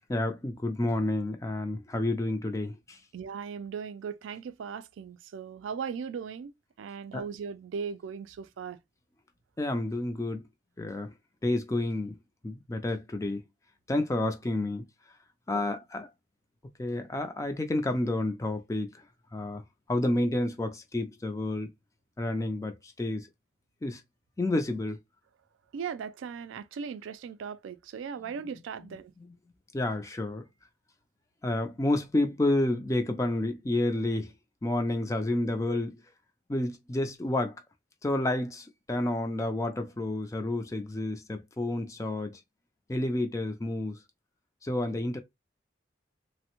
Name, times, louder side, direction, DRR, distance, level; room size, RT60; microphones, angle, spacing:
voice 1, 0.1-3.0 7.1-7.3 9.6-10.4 10.8-11.1 11.4-12.2 12.4-13.4 13.9-14.8 15.5-16.1 16.8-18.9 19.3-19.6 19.9-21.7 22.2-23.3 23.8-24.0 24.4-25.0 29.7-30.4 31.4-34.3 34.6-36.0 36.5-37.5 38.0-42.4 42.9-44.0 44.6-45.2, left 1 dB, 15° left, 0.3 m, -30 dB
voice 2, 3.1-6.5 6.8-8.8 15.5-15.6 25.7-29.1, right 6 dB, 90° right, 0.3 m, -38 dB
3.3 x 2.0 x 2.8 m
head